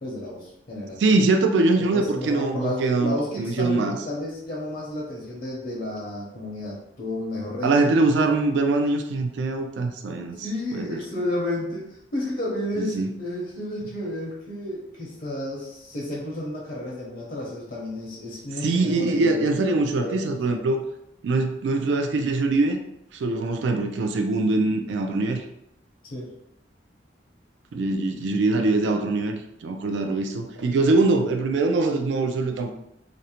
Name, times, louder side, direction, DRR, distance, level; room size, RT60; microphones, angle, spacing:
voice 1, 0.0-1.0 1.8-7.8 10.3-19.7 20.0-20.7 26.0-26.3, left 1 dB, 50° left, -4 dB, 0.7 m, -32 dB
voice 2, 1.0-4.0 7.6-11.0 12.8-13.1 18.6-20.8 21.2-22.8 23.1-25.4 27.7-32.7, right 3 dB, 80° right, 5 dB, 0.3 m, -23 dB
2.5 x 2.0 x 2.8 m, 0.78 s
head